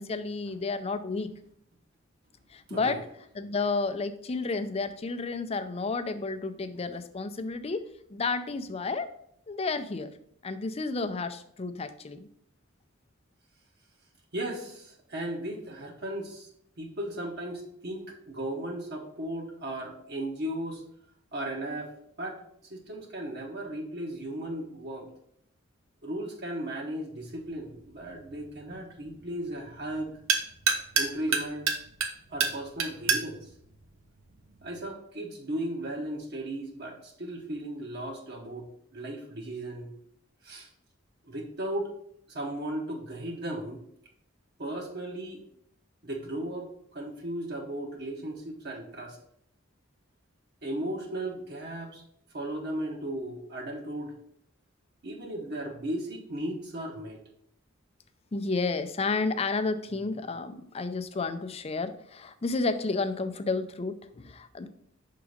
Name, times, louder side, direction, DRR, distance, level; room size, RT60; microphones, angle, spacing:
voice 1, 0.0-1.3 2.5-3.0 3.3-9.1 9.5-10.1 10.4-12.3 58.3-64.7, left 3 dB, 30° left, 10 dB, 0.5 m, -31 dB
voice 2, 2.7-3.0 14.3-16.5 16.8-20.8 21.3-25.1 26.0-30.2 30.9-31.7 32.3-33.5 34.6-39.9 40.4-40.7 41.2-41.9 42.3-43.8 44.6-45.4 46.0-49.2 50.6-52.0 52.3-54.1 55.0-57.2, right 1 dB, 55° right, 0 dB, 1.0 m, -36 dB
sound 1, 27.2-34.8, right 5 dB, 80° right, 0.9 m, -32 dB
5.9 x 3.8 x 5.1 m, 0.71 s
head